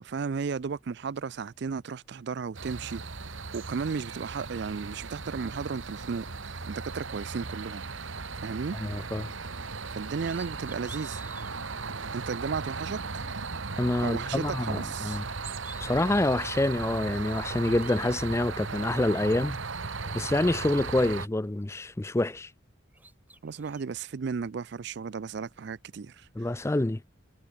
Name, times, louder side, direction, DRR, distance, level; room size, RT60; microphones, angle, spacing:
voice 1, 0.0-3.0 3.3-7.8 8.4-8.8 9.9-11.2 12.1-13.2 14.0-15.2 23.4-26.3, right 5 dB, 55° right, 0.4 m, -34 dB
sound 1, 2.5-21.3, right 4 dB, 70° right, 1.5 m, -37 dB
sound 2, 8.1-20.9, left 1 dB, 50° left, 4.6 m, -65 dB
voice 2, 8.7-9.3 13.8-15.2 15.8-19.6 20.1-22.5 26.4-27.0, left 1 dB, 15° left, 0.4 m, -27 dB
sound 3, 10.2-11.5 12.2-12.3 14.0-14.7 15.0-16.1 17.0-18.2 19.3-19.4 19.8-21.5 21.8-22.7 22.9-23.8, right 2 dB, 10° right, 6.3 m, -52 dB
head